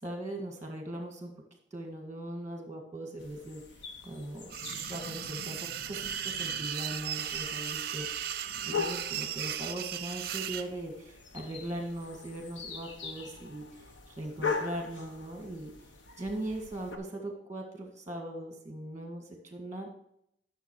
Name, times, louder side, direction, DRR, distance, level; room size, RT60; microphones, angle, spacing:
voice 1, 0.0-1.3 1.7-3.6 4.0-8.1 8.7-15.7 16.2-19.9, right 1 dB, 15° right, 3 dB, 1.8 m, -40 dB
sound 1, 3.2-17.0, left 5 dB, 75° left, 1.1 m, -41 dB
sound 2, 4.5-10.7, right 10 dB, 50° right, 0.6 m, -36 dB
12.0 x 6.5 x 4.7 m, 0.73 s
head